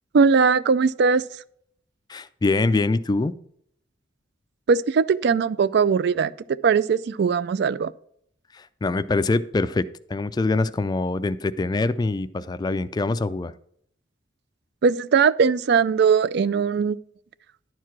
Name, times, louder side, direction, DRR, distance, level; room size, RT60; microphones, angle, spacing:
voice 1, 0.1-1.2 4.7-6.3 6.6-7.9 14.8-17.0, right 5 dB, 60° right, 0.3 m, -20 dB
voice 2, 2.1-3.3 8.5-9.8 10.1-13.5, left 3 dB, 20° left, 0.3 m, -24 dB
11.0 x 4.7 x 5.9 m
head